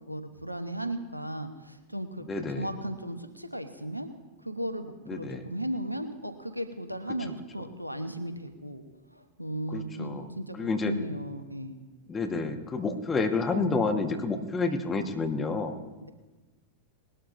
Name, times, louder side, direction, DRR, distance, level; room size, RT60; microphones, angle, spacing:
voice 1, 0.0-2.2 2.5-4.1 4.4-8.8 9.1-11.8, right 1 dB, 90° right, 8 dB, 1.0 m, -36 dB
voice 2, 2.3-2.7 5.1-5.4 9.7-10.2 10.5-10.9 12.1-15.8, left 3 dB, 20° left, 5 dB, 1.4 m, -29 dB
20.0 x 12.5 x 2.6 m, 1.2 s
figure-of-eight pair, 90°, 0 cm